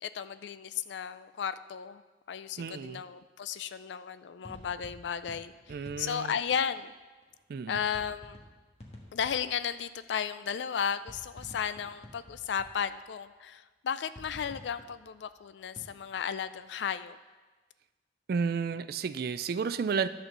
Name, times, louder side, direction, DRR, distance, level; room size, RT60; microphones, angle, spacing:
voice 1, 0.0-2.0 2.3-6.9 7.7-8.4 9.1-17.2, left 7 dB, 75° left, 13 dB, 0.4 m, -34 dB
voice 2, 2.6-3.0 5.7-6.3 7.5-7.8 18.3-20.1, right 5 dB, 55° right, 13 dB, 0.3 m, -32 dB
sound 1, 4.4-6.6 7.2-9.9 10.7-13.3 14.1-16.4, left 1 dB, 35° left, 1.5 m, -51 dB
11.0 x 4.4 x 6.6 m, 1.3 s
head